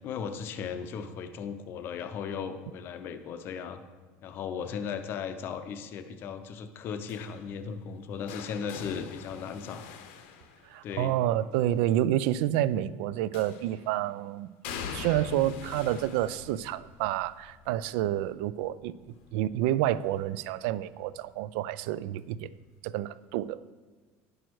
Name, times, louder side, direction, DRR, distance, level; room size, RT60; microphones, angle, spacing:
voice 1, 0.0-3.8 4.2-9.9 10.8-11.1, left 6 dB, 35° left, 9 dB, 0.6 m, -36 dB
sound 1, 7.1-11.1 13.3-13.9 14.6-20.4 20.8-21.2 22.4-22.5, left 7 dB, 80° left, 0.9 m, -44 dB
voice 2, 10.7-14.5 14.9-22.5 22.8-23.6, right 13 dB, 70° right, 17 dB, 0.3 m, -29 dB
10.5 x 6.2 x 4.6 m, 1.4 s
cardioid pair, 170°, 6 cm